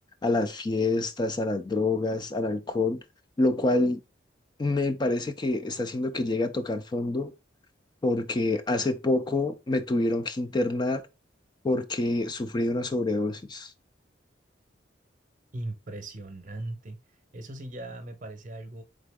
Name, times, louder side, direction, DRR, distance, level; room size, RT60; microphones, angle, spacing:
voice 1, 0.2-3.0 3.4-4.0 4.6-7.3 8.0-11.0 11.6-13.7, left 2 dB, 25° left, 0.4 m, -27 dB
voice 2, 15.5-17.0 17.3-18.8, right 1 dB, 45° right, 0.8 m, -38 dB
3.8 x 3.7 x 3.5 m
head